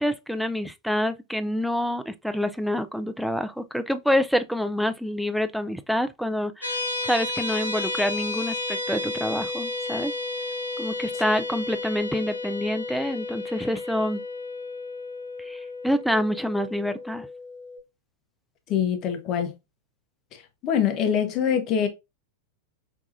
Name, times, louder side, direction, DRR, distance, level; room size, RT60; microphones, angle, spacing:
voice 1, 0.0-10.1 10.8-14.2 15.4-17.3, equal, ahead, 0.4 m, -27 dB
sound 1, 6.6-17.8, left 2 dB, 85° left, 0.9 m, -32 dB
voice 2, 18.7-19.5 20.6-21.9, left 8 dB, 35° left, 1.0 m, -24 dB
5.8 x 2.3 x 2.6 m
figure-of-eight pair, 90°, 0 cm